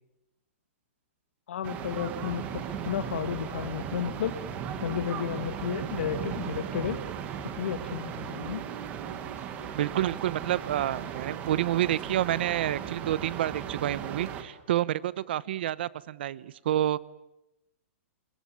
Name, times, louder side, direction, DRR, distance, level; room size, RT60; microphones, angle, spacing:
voice 1, 1.5-4.3 4.8-7.0 7.6-8.6, left 9 dB, 60° left, 9 dB, 1.6 m, -32 dB
sound 1, 1.6-14.4, right 8 dB, 20° right, 1.8 m, -37 dB
sound 2, 4.3-14.5, right 7 dB, 85° right, 4.0 m, -46 dB
voice 2, 9.7-17.0, right 12 dB, 50° right, 20 dB, 0.9 m, -29 dB
28.5 x 22.0 x 9.2 m, 0.88 s
hypercardioid pair, 175°, 7 cm